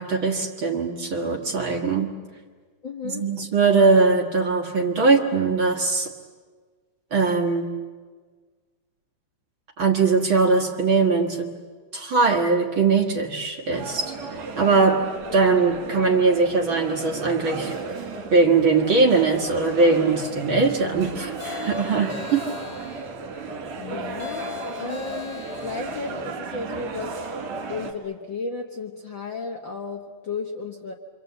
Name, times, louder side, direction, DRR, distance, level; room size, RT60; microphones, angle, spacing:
voice 1, 0.0-2.1 3.0-6.1 7.1-7.7 9.8-11.6 11.9-14.1 14.6-15.0 15.3-17.8 18.3-22.4, right 4 dB, 45° right, 1 dB, 2.2 m, -21 dB
voice 2, 2.8-3.2 23.8-27.2 27.7-30.9, left 4 dB, 50° left, 1 dB, 1.7 m, -34 dB
sound 1, 13.7-27.9, right 3 dB, 60° right, 3.4 m, -34 dB
sound 2, 21.4-23.2 24.2-26.0, left 7 dB, 80° left, 3.9 m, -38 dB
27.0 x 26.0 x 8.1 m, 1.5 s
omnidirectional pair, 3.7 m